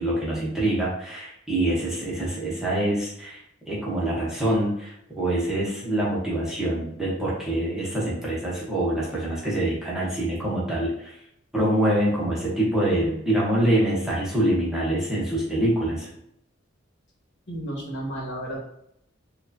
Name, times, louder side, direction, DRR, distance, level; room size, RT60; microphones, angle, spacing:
voice 1, 0.0-3.4 3.7-11.1 11.5-16.1, right 1 dB, 5° right, -7 dB, 1.0 m, -25 dB
voice 2, 17.5-18.6, right 1 dB, 60° left, -3 dB, 1.5 m, -32 dB
4.5 x 2.4 x 2.7 m, 0.75 s
head